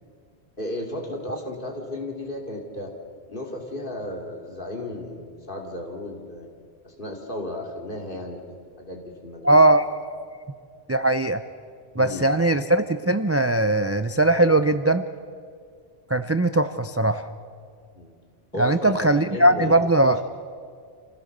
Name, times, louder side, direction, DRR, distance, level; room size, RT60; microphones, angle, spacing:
voice 1, 0.6-2.9 3.3-6.5 6.8-9.6 11.9-12.4 17.9-18.1 18.5-19.8, left 1 dB, 55° left, 1 dB, 2.9 m, -34 dB
voice 2, 9.4-9.8 10.9-11.4 12.0-15.1 16.1-17.3 18.6-20.2, right 2 dB, 20° right, 10 dB, 0.4 m, -20 dB
27.5 x 16.0 x 6.7 m, 2.2 s
omnidirectional pair, 1.1 m